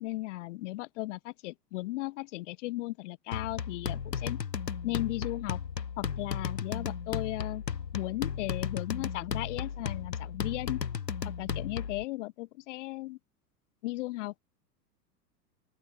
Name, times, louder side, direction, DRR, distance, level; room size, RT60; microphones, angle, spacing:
voice 1, 0.0-4.4 4.8-5.6 6.0-7.6 7.9-10.8 11.4-13.2 13.8-14.4, left 19 dB, 45° left, 1.4 m, -36 dB
sound 1, 3.3-12.0, left 7 dB, 80° left, 1.3 m, -35 dB
open air
figure-of-eight pair, 95°, 49 cm